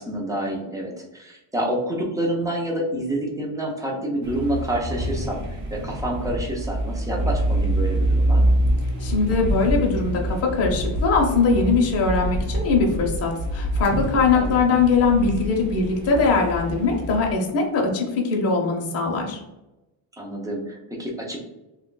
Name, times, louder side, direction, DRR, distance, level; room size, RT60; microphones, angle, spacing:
voice 1, 0.0-5.4 5.7-8.4 14.3-14.6 20.2-21.4, right 1 dB, 10° right, -1 dB, 0.4 m, -28 dB
sound 1, 4.2-17.3, right 1 dB, 35° right, 0.7 m, -25 dB
voice 2, 9.0-19.4, left 4 dB, 30° left, -1 dB, 0.6 m, -21 dB
2.9 x 2.3 x 3.7 m, 0.98 s
cardioid pair, 160°, 49 cm